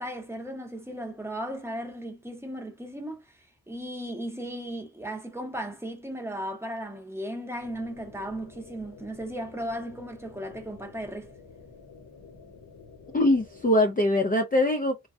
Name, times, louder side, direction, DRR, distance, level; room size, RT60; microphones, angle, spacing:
voice 1, 0.0-3.2 3.7-11.3, equal, 5° right, 0.8 m, -36 dB
sound 1, 7.6-13.7, left 4 dB, 70° left, 1.1 m, -50 dB
voice 2, 13.1-15.1, left 1 dB, 25° left, 0.4 m, -23 dB
3.3 x 2.2 x 2.6 m
wide cardioid pair, 95°, 37 cm